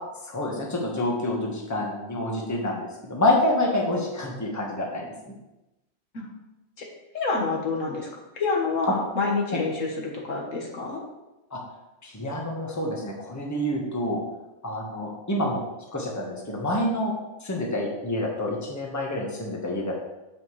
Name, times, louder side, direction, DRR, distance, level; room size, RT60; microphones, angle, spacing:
voice 1, 0.3-5.3 9.5-9.6 11.5-11.6 12.0-14.2 14.6-15.6 15.9-17.1 17.4-19.9, left 1 dB, 15° left, -2 dB, 1.3 m, -27 dB
voice 2, 7.1-8.1 8.4-11.0, left 3 dB, 70° left, 0 dB, 1.7 m, -27 dB
8.9 x 7.6 x 3.2 m, 1.0 s
omnidirectional pair, 1.4 m